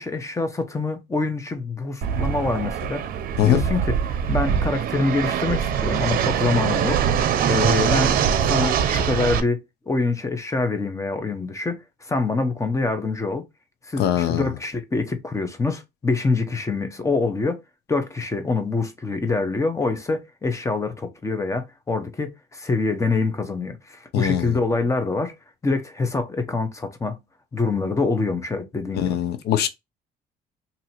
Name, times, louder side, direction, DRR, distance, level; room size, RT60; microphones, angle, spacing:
voice 1, 0.0-3.1 3.4-8.2 8.4-9.6 9.9-13.4 13.9-17.6 17.9-25.3 25.6-27.2 27.5-29.2, left 3 dB, 20° left, 0.9 m, -25 dB
Fixed-wing aircraft airplane, 2.0-9.4, right 8 dB, 60° right, 0.6 m, -23 dB
voice 2, 14.0-14.5 24.1-24.6 29.0-29.7, left 11 dB, 75° left, 0.7 m, -22 dB
2.8 x 2.7 x 4.2 m
cardioid pair, 110°, 17 cm